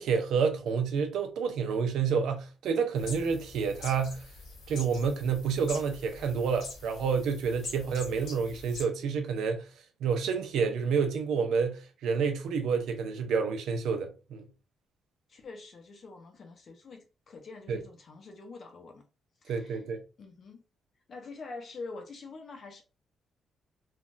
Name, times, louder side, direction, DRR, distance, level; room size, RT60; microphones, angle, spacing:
voice 1, 0.0-4.3 4.7-9.7 10.0-14.5 17.7-17.8 19.5-20.0, right 6 dB, 85° right, 0.6 m, -29 dB
sound 1, 3.0-8.8, left 3 dB, 75° left, 1.3 m, -45 dB
voice 2, 15.3-19.0 19.4-19.8 20.2-20.6 21.1-22.8, left 3 dB, 40° left, 0.6 m, -45 dB
3.2 x 2.3 x 2.5 m
cardioid pair, 160°, 0 cm